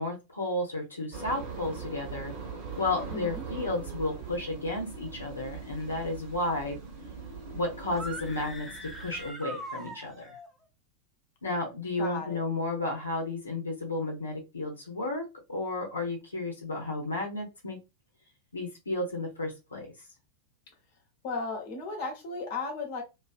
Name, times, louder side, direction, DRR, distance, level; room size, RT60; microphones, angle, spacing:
voice 1, 0.0-2.3 2.8-6.8 7.5-10.4 11.4-15.2 15.5-17.8 18.5-19.9, left 2 dB, 75° left, -1 dB, 0.8 m, -32 dB
sound 1, 1.1-9.3, right 5 dB, 45° right, 1.0 m, -41 dB
voice 2, 3.1-3.4 12.0-12.4 21.2-23.0, left 3 dB, 50° left, 2 dB, 0.9 m, -35 dB
sound 2, 7.9-10.5, right 1 dB, 5° right, 0.7 m, -41 dB
2.4 x 2.3 x 2.4 m, 0.25 s
figure-of-eight pair, 90°, 0 cm